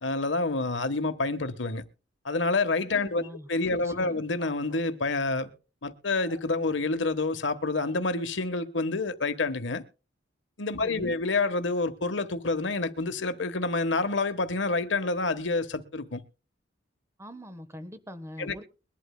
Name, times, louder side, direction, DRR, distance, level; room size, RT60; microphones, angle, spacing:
voice 1, 0.0-1.8 2.2-5.5 5.8-9.8 10.6-16.2 18.4-18.5, left 3 dB, 70° left, 1.3 m, -28 dB
voice 2, 2.9-3.5 3.8-4.2 10.8-11.2 17.2-18.6, equal, 15° right, 1.2 m, -43 dB
sound 1, 4.4-5.6 6.2-7.1, equal, 85° right, 7.3 m, -54 dB
22.5 x 11.5 x 2.2 m
head